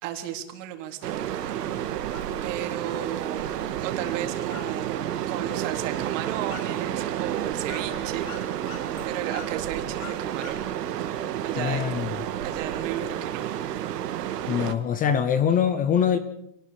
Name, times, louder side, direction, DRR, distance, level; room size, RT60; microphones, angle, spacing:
voice 1, 0.0-1.3 1.7-2.0 2.4-5.0 5.3-8.3 8.5-10.7 11.4-11.8 12.4-13.6, right 11 dB, 50° right, 5 dB, 3.4 m, -35 dB
sound 1, 1.0-14.7, right 11 dB, 85° right, 2.1 m, -30 dB
sound 2, 2.1-11.0, left 6 dB, 55° left, 7.5 m, -47 dB
voice 2, 11.5-12.1 14.5-16.2, left 8 dB, 20° left, 12 dB, 0.8 m, -23 dB
27.5 x 19.5 x 5.1 m, 0.77 s
supercardioid pair, 155°, 47 cm